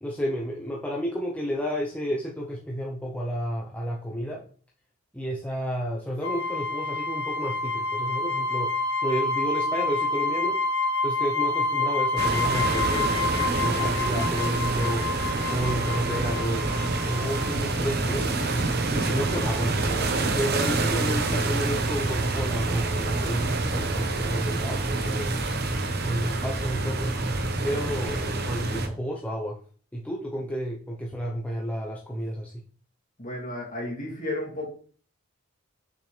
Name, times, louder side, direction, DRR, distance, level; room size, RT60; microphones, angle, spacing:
voice 1, 0.0-4.4 5.1-10.6 11.0-15.1 15.5-16.7 17.0-18.3 18.9-25.3 26.0-27.2 27.6-29.6 29.9-32.5, equal, 5° left, -3 dB, 0.7 m, -31 dB
sound 1, 6.2-17.7, left 2 dB, 85° left, 1.4 m, -28 dB
sound 2, 12.2-28.9, right 3 dB, 45° right, 0.9 m, -27 dB
voice 2, 33.2-34.7, left 1 dB, 35° left, -1 dB, 2.5 m, -33 dB
6.6 x 6.4 x 3.3 m, 0.43 s
head